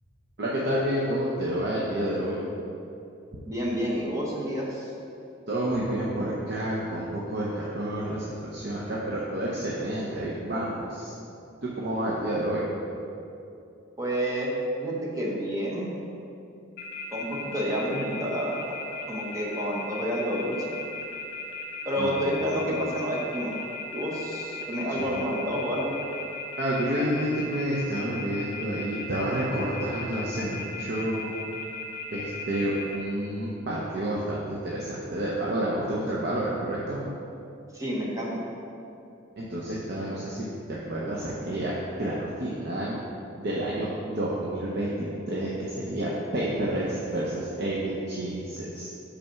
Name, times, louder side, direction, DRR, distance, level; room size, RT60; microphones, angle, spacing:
voice 1, 0.4-2.4 5.5-11.1 11.6-12.7 22.0-22.2 25.0-25.1 26.6-31.3 32.1-37.0 39.4-41.7 42.0-42.9 43.4-48.9, right 1 dB, 55° right, -6 dB, 0.7 m, -29 dB
voice 2, 3.5-4.9 14.0-14.5 14.8-15.9 17.1-18.6 19.1-20.6 21.8-23.5 23.9-25.9 37.7-38.3, equal, 15° right, -4 dB, 1.0 m, -29 dB
sound 1, 16.8-33.0, left 5 dB, 55° left, 1.1 m, -37 dB
5.5 x 4.2 x 5.7 m, 2.7 s
head